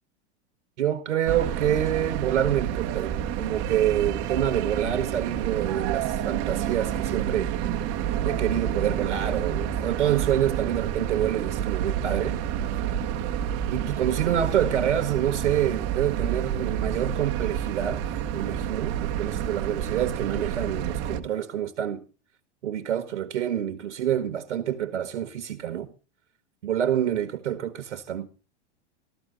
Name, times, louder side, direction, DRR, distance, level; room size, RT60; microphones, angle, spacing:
voice 1, 0.8-7.5 8.2-12.4 13.7-18.0 18.3-22.0 22.6-25.9 26.6-28.3, right 10 dB, 85° right, 1.6 m, -27 dB
sound 1, 1.3-21.2, right 10 dB, 45° right, 1.5 m, -29 dB
14.0 x 14.0 x 3.9 m
hypercardioid pair, 110°, 34 cm